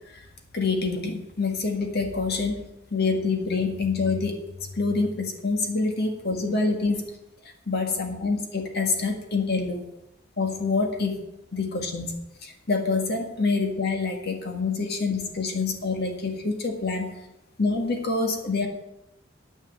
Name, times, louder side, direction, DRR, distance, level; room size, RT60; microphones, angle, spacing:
voice 1, 0.5-7.1 7.4-9.9 10.4-11.2 11.5-17.2 17.6-18.7, left 4 dB, 55° left, 4 dB, 1.9 m, -26 dB
9.4 x 8.9 x 7.6 m, 0.90 s
head